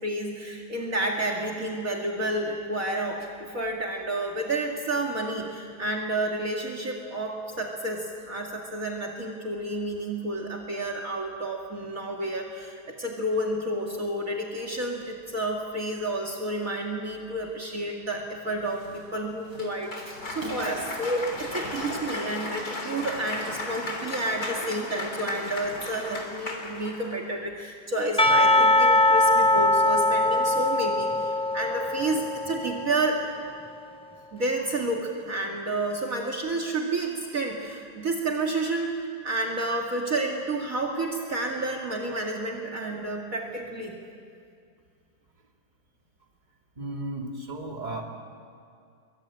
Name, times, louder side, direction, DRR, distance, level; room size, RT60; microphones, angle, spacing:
voice 1, 0.0-33.2 34.3-44.0, right 2 dB, 50° right, 0 dB, 2.7 m, -30 dB
sound 1, 18.6-26.8, equal, 90° right, 7.2 m, -47 dB
Cheering / Applause, 19.5-27.2, left 2 dB, 55° left, 4.0 m, -35 dB
Percussion / Church bell, 28.2-33.2, left 1 dB, 5° left, 0.5 m, -22 dB
voice 2, 46.7-48.0, right 2 dB, 25° right, 0 dB, 3.3 m, -34 dB
27.5 x 24.0 x 9.0 m, 2.3 s
omnidirectional pair, 1.9 m